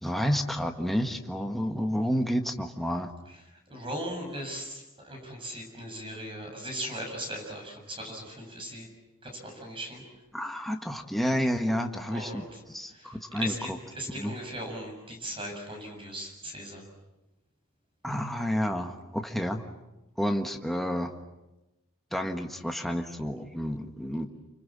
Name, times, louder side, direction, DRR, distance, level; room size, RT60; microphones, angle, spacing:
voice 1, 0.0-3.1 10.3-13.8 14.1-14.3 18.0-19.6 20.2-21.1 22.1-24.3, equal, ahead, 4 dB, 1.5 m, -30 dB
voice 2, 3.7-8.9 9.2-10.0 12.1-12.6 12.9-13.7 13.9-16.8, equal, 25° right, 3 dB, 7.3 m, -38 dB
29.0 x 25.0 x 7.5 m, 1.0 s
head